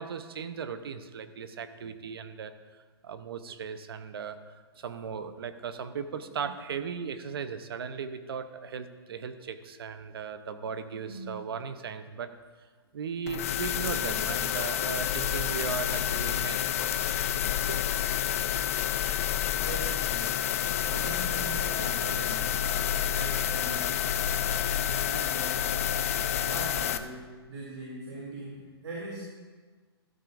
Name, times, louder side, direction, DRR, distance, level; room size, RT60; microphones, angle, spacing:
voice 1, 0.0-2.5 3.0-12.3 12.9-17.0 17.7-17.8, right 6 dB, 65° right, 10 dB, 0.8 m, -37 dB
sound 1, 13.3-27.0, left 10 dB, 35° left, 0.4 m, -29 dB
voice 2, 19.6-20.4 20.8-22.6 23.1-24.4 24.9-25.7 26.5-29.2, right 2 dB, 90° right, -5 dB, 2.9 m, -41 dB
13.5 x 11.5 x 2.6 m, 1.4 s
hypercardioid pair, 170°, 14 cm